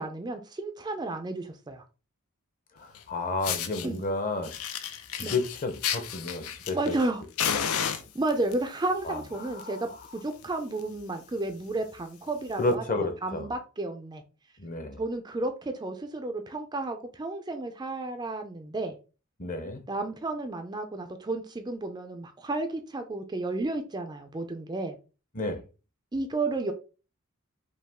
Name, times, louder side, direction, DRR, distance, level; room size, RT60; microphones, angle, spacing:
voice 1, 0.0-1.8 3.8-4.0 5.2-5.4 6.7-7.2 8.1-12.8 13.2-14.2 15.0-19.0 19.9-24.9 26.1-26.7, right 2 dB, 20° right, 0.4 m, -32 dB
voice 2, 2.7-4.5 5.2-7.0 7.5-7.7 9.0-9.8 12.6-13.5 14.6-15.0 19.4-19.8 25.3-25.6, left 2 dB, 40° left, 0.8 m, -31 dB
Fire, 2.9-3.0 3.4-3.9 4.4-7.1 7.4-8.5 9.4-9.6 9.9-10.0 10.4-10.5 10.8-11.0 11.6-11.7 12.6-12.7, left 8 dB, 85° left, 0.6 m, -32 dB
5.3 x 2.3 x 3.5 m
head